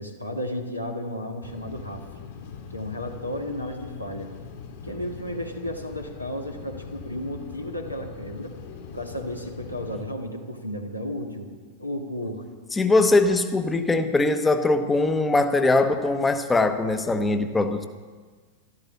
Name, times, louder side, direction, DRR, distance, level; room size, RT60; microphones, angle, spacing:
voice 1, 0.0-2.0 2.7-4.3 4.8-8.5 8.9-11.5 11.8-12.4 12.9-13.0, equal, 90° left, 2 dB, 1.8 m, -33 dB
sound 1, 1.4-10.0, left 6 dB, 55° left, 2.5 m, -41 dB
voice 2, 12.7-17.9, left 2 dB, 10° left, 8 dB, 1.0 m, -21 dB
13.5 x 13.0 x 7.1 m, 1.5 s
figure-of-eight pair, 90°, 0 cm